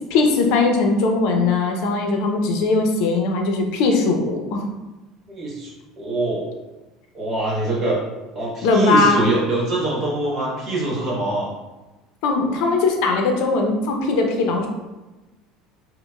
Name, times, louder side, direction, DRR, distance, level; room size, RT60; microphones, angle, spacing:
voice 1, 0.1-4.6 8.6-9.2 12.2-14.7, left 3 dB, 70° left, 3 dB, 0.6 m, -19 dB
voice 2, 5.3-6.5 7.1-8.0 8.3-11.5, right 2 dB, 40° right, -4 dB, 1.2 m, -24 dB
5.1 x 2.1 x 2.3 m, 1.1 s
supercardioid pair, 120°, 0 cm